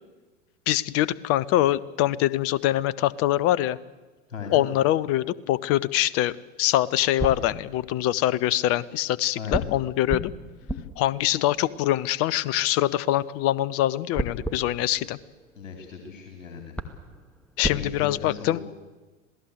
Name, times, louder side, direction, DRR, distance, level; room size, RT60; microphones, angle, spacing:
voice 1, 0.7-3.8 4.5-6.3 6.6-10.3 11.0-15.2 17.6-18.6, left 14 dB, 35° left, 21 dB, 0.8 m, -24 dB
voice 2, 4.3-4.7 9.4-9.8 15.6-16.8 17.7-18.6, left 6 dB, 65° left, 3 dB, 3.6 m, -37 dB
sound 1, 7.2-8.3 9.5-12.8 14.1-16.0 16.4-16.5 16.7-17.8, right 1 dB, 5° left, 2.1 m, -35 dB
26.5 x 18.0 x 8.2 m, 1.2 s
figure-of-eight pair, 85°, 40 cm